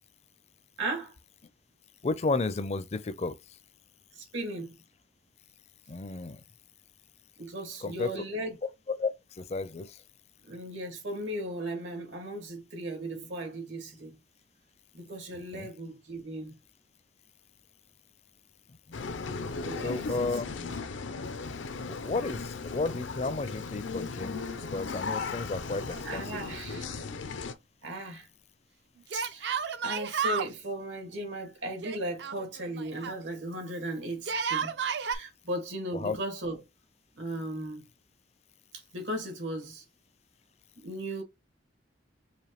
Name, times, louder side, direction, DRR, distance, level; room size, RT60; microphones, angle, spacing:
voice 1, 0.8-1.1 4.1-4.8 7.4-8.6 10.4-14.2 14.9-16.6 19.6-20.7 26.0-27.0 27.8-28.3 29.1-34.7 35.0-36.6 37.2-37.8 38.9-39.8 40.8-41.2, right 1 dB, 85° right, 2.0 m, -37 dB
voice 2, 2.0-3.3 5.9-6.4 7.8-8.1 8.9-9.1 9.4-9.9 15.3-15.7 19.8-20.5 21.9-26.4 26.7-26.8 36.0-36.2, left 3 dB, 35° left, 0.4 m, -32 dB
sound 1, 18.9-27.5, left 4 dB, 80° left, 0.6 m, -37 dB
Yell, 25.9-26.7 27.0-27.1 29.1-30.5 31.8-33.2 34.2-35.2, right 6 dB, 60° right, 0.5 m, -32 dB
5.0 x 2.6 x 3.0 m
head